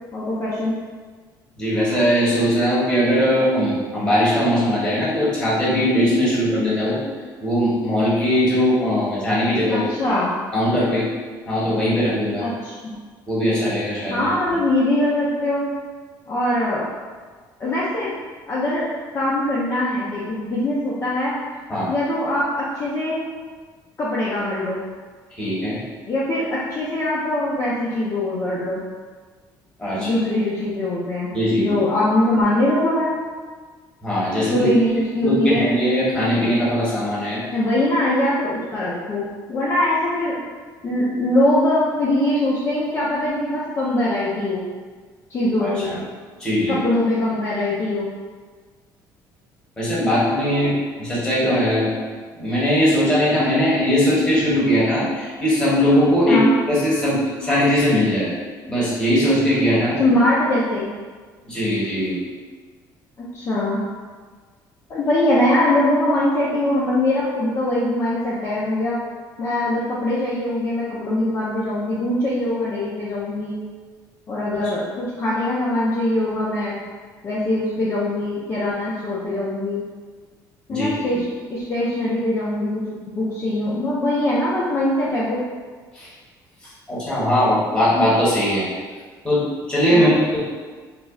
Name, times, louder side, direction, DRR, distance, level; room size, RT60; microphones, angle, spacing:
voice 1, 0.1-0.7 9.7-10.3 12.4-13.0 14.1-15.7 16.3-16.9 17.6-18.1 18.5-18.9 19.1-21.4 21.9-23.2 24.0-24.8 26.0-28.8 30.0-33.1 34.4-35.7 37.5-40.4 40.8-44.6 45.3-45.9 46.7-48.1 50.1-50.7 56.2-56.5 60.0-60.9 63.2-63.8 64.9-69.0 69.4-73.6 74.3-76.8 77.2-79.8 80.7-82.8 83.1-85.4 89.9-90.2, left 1 dB, 30° left, -8 dB, 0.5 m, -22 dB
voice 2, 1.6-7.0 7.4-9.8 10.5-11.0 11.5-12.4 13.3-14.3 21.7-21.9 25.4-25.8 29.8-30.1 31.3-31.7 34.0-34.7 35.2-37.4 45.6-46.0 46.4-46.8 49.8-50.7 51.0-51.9 52.3-56.4 56.7-58.3 58.7-60.0 61.5-62.2 80.7-80.9 85.9-86.1 86.9-88.7 89.2-90.4, equal, 10° left, -9 dB, 1.1 m, -20 dB
2.3 x 2.0 x 3.5 m, 1.5 s
cardioid pair, 125°, 8 cm